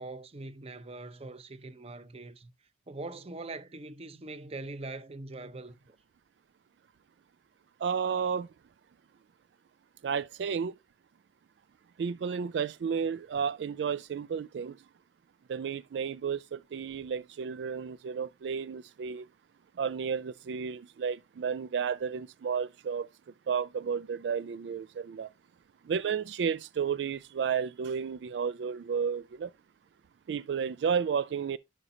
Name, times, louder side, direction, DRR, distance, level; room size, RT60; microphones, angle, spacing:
voice 1, 0.0-2.5 2.9-6.0, right 2 dB, 35° right, 0.7 m, -42 dB
voice 2, 7.8-8.5 10.0-10.7 12.0-14.8 15.5-19.3 19.8-23.1 23.5-25.3 25.9-29.5 30.3-31.6, right 6 dB, 75° right, 0.3 m, -32 dB
11.0 x 5.0 x 2.7 m
head